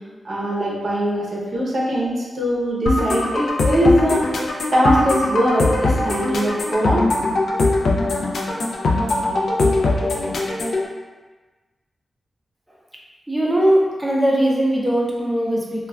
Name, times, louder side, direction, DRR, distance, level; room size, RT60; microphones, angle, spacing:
voice 1, 0.2-7.1, equal, 50° right, -5 dB, 0.6 m, -21 dB
sound 1, 2.9-10.8, left 2 dB, 75° left, 0.3 m, -21 dB
voice 2, 13.3-15.9, right 1 dB, 5° right, -3 dB, 0.4 m, -19 dB
2.2 x 2.2 x 3.4 m, 1.3 s
wide cardioid pair, 175°, 0 cm